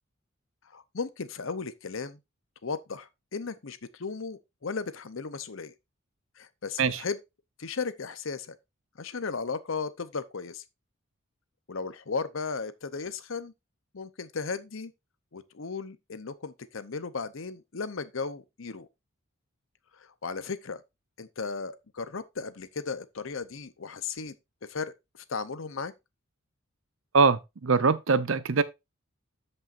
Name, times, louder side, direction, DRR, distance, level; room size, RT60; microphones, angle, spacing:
voice 1, 0.7-2.2 2.6-5.7 6.4-7.2 7.6-8.6 9.0-10.6 11.7-13.5 13.9-14.9 15.3-18.9 20.0-20.8 21.2-24.3 24.7-24.9 25.3-25.9, left 4 dB, 70° left, 0.8 m, -35 dB
voice 2, 27.1-28.6, right 4 dB, 70° right, 0.7 m, -23 dB
13.0 x 5.5 x 2.5 m
head